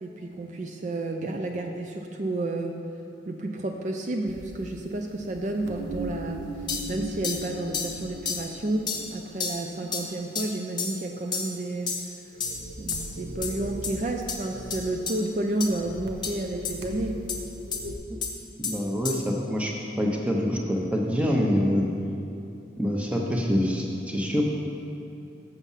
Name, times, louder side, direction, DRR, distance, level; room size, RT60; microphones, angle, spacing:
voice 1, 0.0-2.8 3.3-6.5 6.9-12.0 12.8-17.2, right 2 dB, 40° right, 3 dB, 0.4 m, -31 dB
sound 1, 4.3-9.4 9.9-10.1 12.0-12.1 12.3-15.2 15.5-17.9, right 1 dB, 65° right, 0.7 m, -39 dB
sound 2, 6.7-6.9 7.2-7.4 7.7-7.9 8.2-8.4 8.9-9.1 9.4-9.6 9.9-10.0 10.3-10.5 10.8-11.0 11.3-11.5 11.9-12.1 12.4-12.6 12.9-13.1 13.4-13.5 13.8-13.9 14.3-14.4 14.7-14.8 15.1-15.2 15.6-15.7 16.2-16.3 16.6-16.7 17.3-17.4 17.7-17.8 18.2-18.3 18.6-18.8 19.0-19.2, left 5 dB, 25° left, 0.7 m, -30 dB
voice 2, 18.7-19.7 20.0-21.9 22.8-24.7, equal, 5° right, -1 dB, 0.8 m, -25 dB
7.2 x 6.7 x 5.6 m, 2.7 s
head